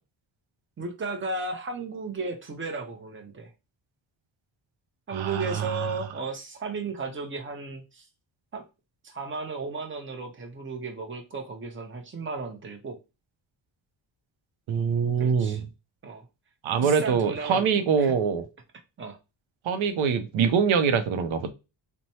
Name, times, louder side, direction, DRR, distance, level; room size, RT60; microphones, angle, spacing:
voice 1, 0.8-3.5 5.1-8.1 8.5-8.6 9.0-13.0 15.2-15.6 16.0-16.3 16.8-18.1 19.0-19.2, right 3 dB, 25° right, 0.7 m, -34 dB
voice 2, 5.1-5.7 14.7-15.6 16.6-18.4 19.7-21.5, right 6 dB, 85° right, 0.6 m, -24 dB
3.0 x 2.1 x 2.7 m
cardioid pair, 105°, 46 cm